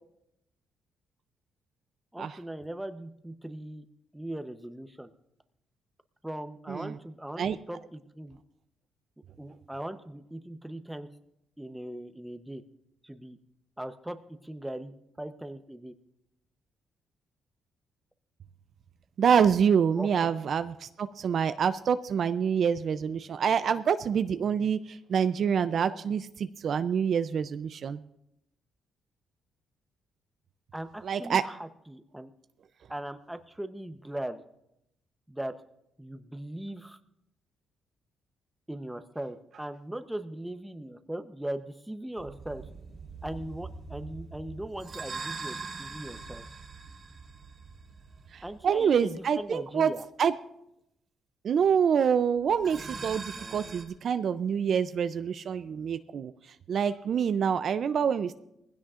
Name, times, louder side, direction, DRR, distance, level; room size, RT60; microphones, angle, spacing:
voice 1, 2.1-3.9 4.1-5.1 6.2-8.4 9.4-11.1 11.6-12.6 13.0-13.4 13.8-14.9 15.2-15.9 20.0-20.3 30.7-32.3 32.9-34.4 35.3-35.5 36.0-37.0 38.7-42.7 43.2-46.5 48.4-50.0 53.3-53.7, right 1 dB, 5° right, 9 dB, 0.9 m, -39 dB
voice 2, 19.2-28.0 31.0-31.4 48.3-49.9 50.2-50.3 51.4-56.3 56.7-58.3, right 7 dB, 55° right, 12 dB, 0.5 m, -26 dB
sound 1, 42.2-48.8 52.5-53.9, right 4 dB, 40° right, 2.6 m, -42 dB
19.5 x 16.0 x 2.5 m, 0.83 s
cardioid pair, 90°, 0 cm